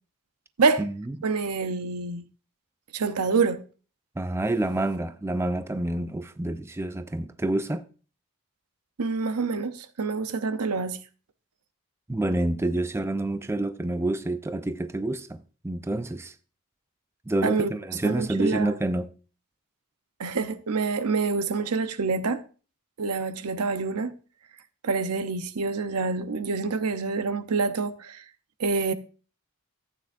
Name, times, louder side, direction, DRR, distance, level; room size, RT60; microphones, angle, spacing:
voice 1, 1.2-2.2 2.9-3.6 9.0-11.0 17.4-17.7 18.0-18.8 20.2-22.4 23.0-24.1 24.8-28.2 28.6-28.9, right 4 dB, 80° right, 0.8 m, -26 dB
voice 2, 4.2-7.8 12.1-15.4 15.6-16.3 17.3-19.1, right 1 dB, 10° right, 0.4 m, -28 dB
14.0 x 9.0 x 2.5 m
head